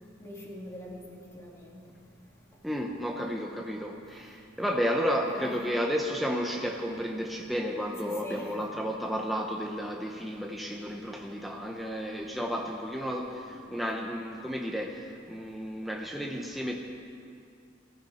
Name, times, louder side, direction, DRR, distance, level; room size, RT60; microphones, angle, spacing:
voice 1, 0.2-1.8 5.2-5.6 8.0-8.5, left 1 dB, 15° left, -3 dB, 2.5 m, -42 dB
voice 2, 2.6-16.8, equal, ahead, 0 dB, 0.8 m, -32 dB
20.5 x 14.5 x 4.3 m, 2.5 s
head